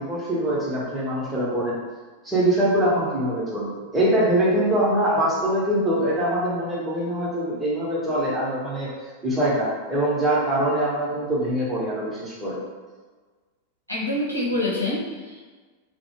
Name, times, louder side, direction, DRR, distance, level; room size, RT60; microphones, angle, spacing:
voice 1, 0.0-1.8 2.2-8.9 9.2-12.6, right 1 dB, 10° right, -7 dB, 0.9 m, -23 dB
voice 2, 13.9-15.4, left 1 dB, 85° left, -6 dB, 0.8 m, -26 dB
2.6 x 2.1 x 2.8 m, 1.4 s
figure-of-eight pair, 90°, 0 cm